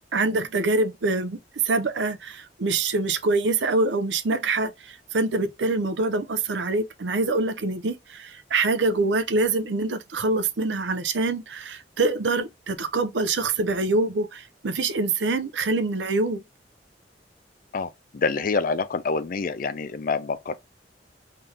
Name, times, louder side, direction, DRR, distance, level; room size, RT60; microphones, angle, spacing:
voice 1, 0.1-1.4 1.6-16.4, right 3 dB, 80° right, 0.6 m, -25 dB
voice 2, 17.7-20.6, left 4 dB, 50° left, 0.5 m, -27 dB
3.8 x 2.7 x 3.3 m
head